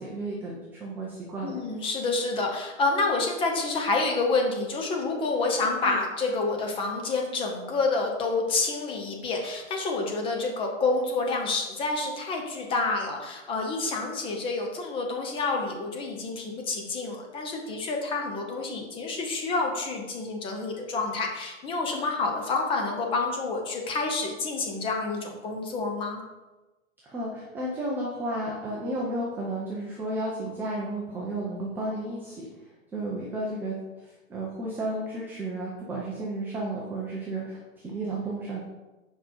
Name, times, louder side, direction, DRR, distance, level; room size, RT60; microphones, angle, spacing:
voice 1, 0.0-1.6 5.8-6.0 27.0-32.4 32.9-38.6, right 1 dB, 5° right, -4 dB, 0.5 m, -33 dB
voice 2, 1.4-26.2, left 3 dB, 15° left, 2 dB, 0.8 m, -28 dB
7.8 x 5.3 x 4.4 m, 1.1 s
hypercardioid pair, 150°, 39 cm